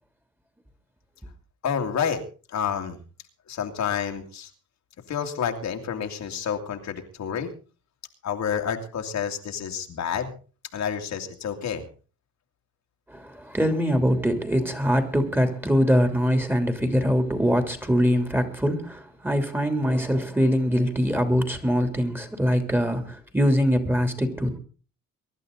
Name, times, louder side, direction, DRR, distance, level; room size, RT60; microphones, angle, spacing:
voice 1, 1.6-2.2 2.5-3.0 3.5-4.5 5.1-7.5 8.2-10.3 10.7-11.8, left 7 dB, 65° left, 2.5 m, -29 dB
voice 2, 13.1-24.6, equal, 5° right, 3.2 m, -23 dB
23.5 x 11.5 x 4.0 m
cardioid pair, 90°, 30 cm